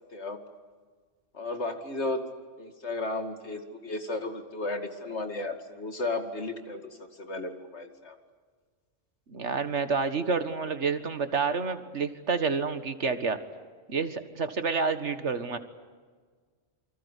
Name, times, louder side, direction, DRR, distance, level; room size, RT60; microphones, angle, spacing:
voice 1, 1.3-2.2 2.6-8.2, left 2 dB, 65° left, 6 dB, 2.7 m, -34 dB
voice 2, 9.3-13.4 13.9-15.6, right 5 dB, 65° right, 10 dB, 1.9 m, -29 dB
28.0 x 25.0 x 8.4 m, 1.5 s
omnidirectional pair, 1.3 m